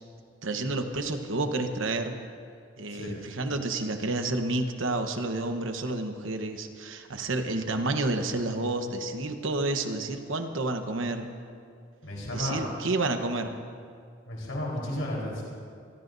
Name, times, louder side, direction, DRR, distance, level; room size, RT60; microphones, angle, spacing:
voice 1, 0.4-2.2 2.8-11.3 12.3-13.5, right 2 dB, 80° right, 6 dB, 1.1 m, -30 dB
voice 2, 12.0-12.7 14.2-15.4, left 1 dB, 80° left, -4 dB, 4.2 m, -33 dB
26.0 x 17.0 x 2.7 m, 2.3 s
head